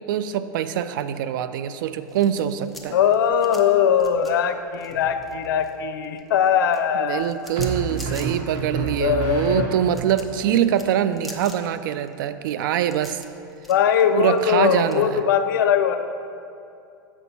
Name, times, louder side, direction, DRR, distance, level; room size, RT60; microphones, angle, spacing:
voice 1, 0.0-3.0 7.0-13.2 14.1-15.2, right 10 dB, 75° right, 12 dB, 0.4 m, -24 dB
sound 1, 1.8-5.7 6.0-15.0, left 1 dB, ahead, 0.7 m, -44 dB
voice 2, 2.9-7.3 8.1-8.2 8.8-9.7 13.7-16.0, left 8 dB, 80° left, 8 dB, 0.5 m, -21 dB
sound 2, 4.9-5.5 7.6-10.2, right 3 dB, 50° right, 1.2 m, -30 dB
6.9 x 4.4 x 5.5 m, 2.5 s
supercardioid pair, 120°, 11 cm